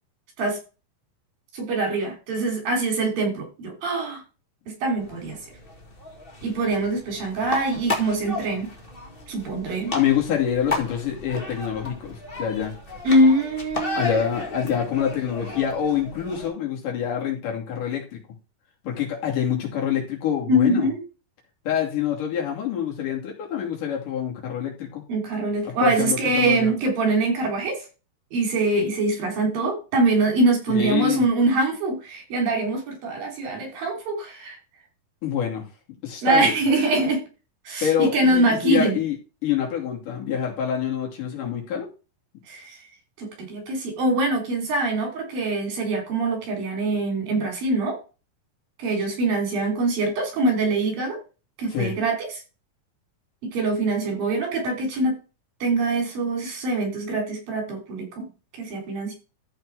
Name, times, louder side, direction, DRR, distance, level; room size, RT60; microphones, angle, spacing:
voice 1, 1.5-4.2 4.8-5.4 6.4-8.7 9.3-9.9 13.0-14.0 20.5-21.0 25.1-27.8 28.3-34.6 36.2-37.2 37.7-39.0 42.5-42.8 43.2-48.0 48.8-51.2 51.6-52.3 53.4-55.2 55.6-58.3 58.5-59.1, right 2 dB, 85° right, 2 dB, 5.3 m, -23 dB
sound 1, 5.0-16.5, left 2 dB, 25° left, 1.4 m, -34 dB
voice 2, 9.9-12.7 14.0-18.2 18.8-20.9 21.7-25.0 25.7-26.7 30.7-31.2 35.2-35.7 36.0-36.5 37.8-39.2 39.4-41.9 51.7-52.0, left 8 dB, 70° left, 0 dB, 4.1 m, -26 dB
13.5 x 4.5 x 4.8 m, 0.31 s
omnidirectional pair, 3.9 m